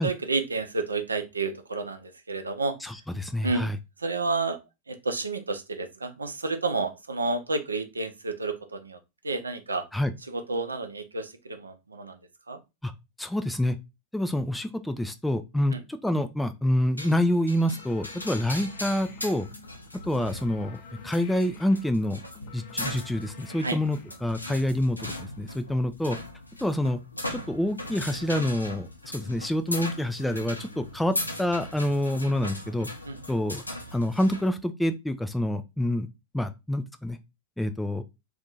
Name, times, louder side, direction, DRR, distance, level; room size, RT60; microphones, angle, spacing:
voice 1, 0.0-2.8 3.4-3.7 4.0-4.6 4.9-9.0 9.2-9.9 10.3-12.2 12.5-12.6 15.7-15.8 23.6-23.8 33.0-33.2, right 3 dB, 75° right, 7 dB, 0.5 m, -30 dB
voice 2, 2.8-3.8 9.9-10.1 12.8-12.9 13.2-13.8 14.1-15.7 16.0-19.5 20.0-22.2 22.5-26.2 26.6-27.0 27.3-28.9 29.1-32.9 33.3-33.6 33.9-36.1 36.3-37.2 37.6-38.0, left 1 dB, 5° left, 9 dB, 0.4 m, -27 dB
sound 1, 17.0-34.5, left 1 dB, 85° left, 0.6 m, -39 dB
sound 2, 17.6-24.7, left 5 dB, 45° left, 0.7 m, -49 dB
2.6 x 2.5 x 4.0 m, 0.25 s
figure-of-eight pair, 90°, 0 cm